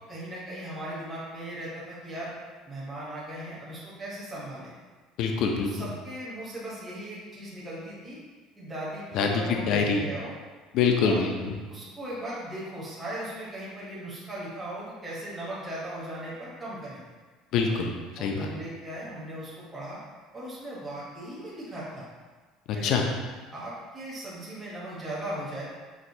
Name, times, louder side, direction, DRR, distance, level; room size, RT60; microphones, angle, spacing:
voice 1, 0.1-2.3 2.7-4.7 5.6-8.2 8.6-10.3 11.0-11.2 11.7-17.0 18.2-20.0 20.3-22.1 22.7-23.0 23.5-25.6, right 1 dB, 10° right, -8 dB, 0.8 m, -38 dB
voice 2, 5.2-5.9 9.1-10.0 10.7-11.5 17.5-18.5 22.7-23.1, left 5 dB, 50° left, 3 dB, 0.4 m, -25 dB
5.9 x 2.2 x 2.6 m, 1.4 s
cardioid pair, 170°, 0 cm